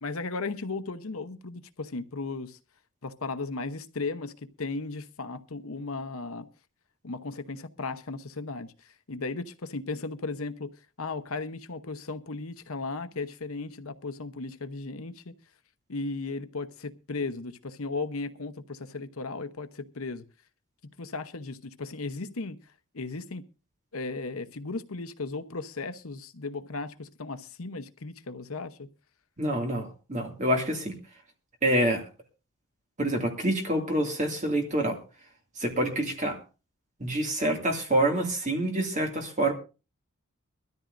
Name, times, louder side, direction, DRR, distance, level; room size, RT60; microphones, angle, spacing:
voice 1, 0.0-2.6 3.0-6.5 7.0-10.7 11.0-15.3 15.9-20.2 21.0-22.6 22.9-23.4 23.9-28.9, left 3 dB, 70° left, 0.9 m, -36 dB
voice 2, 29.4-30.9 31.6-32.1 33.0-35.0 35.6-36.4 37.0-39.5, right 1 dB, 35° right, 2.3 m, -27 dB
22.5 x 13.5 x 2.6 m
head